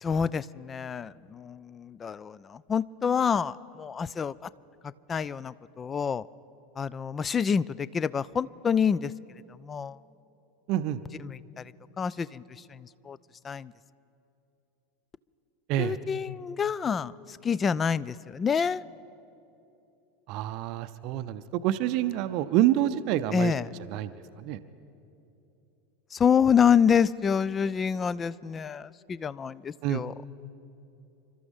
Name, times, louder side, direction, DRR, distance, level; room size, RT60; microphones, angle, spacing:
voice 1, 0.0-4.5 4.8-6.3 6.8-9.1 9.6-10.0 11.2-13.2 13.4-13.7 15.8-18.8 23.3-23.7 26.1-30.1, left 7 dB, 25° left, 21 dB, 0.3 m, -27 dB
voice 2, 10.7-11.0 15.7-16.0 20.3-23.5 23.9-24.1 24.4-24.6 29.8-30.0, right 13 dB, 50° right, 11 dB, 0.5 m, -27 dB
28.5 x 13.0 x 3.6 m, 2.9 s
figure-of-eight pair, 85°, 0 cm